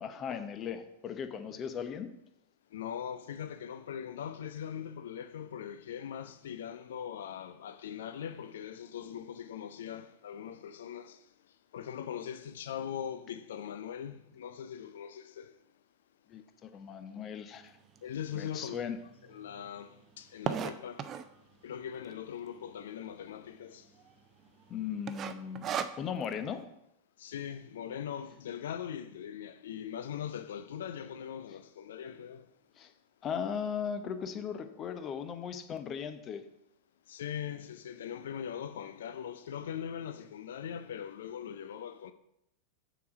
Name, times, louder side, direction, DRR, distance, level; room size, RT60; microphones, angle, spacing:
voice 1, 0.0-2.1 16.3-17.7 18.3-19.0 24.7-26.6 32.8-32.9 33.2-36.4, left 7 dB, 30° left, 0.8 m, -37 dB
voice 2, 2.7-11.2 11.7-15.5 18.0-18.9 19.2-21.1 21.6-23.9 27.2-32.4 37.1-42.1, left 9 dB, 60° left, 0.4 m, -41 dB
sound 1, 18.0-18.1 18.6-18.7 18.9-19.0 19.3-21.4 22.0-22.5 22.8-22.9 23.1-23.2 23.8-24.1 24.4-24.7 25.1-26.3, right 8 dB, 30° right, 0.5 m, -36 dB
7.0 x 5.0 x 6.1 m
figure-of-eight pair, 90°, 0 cm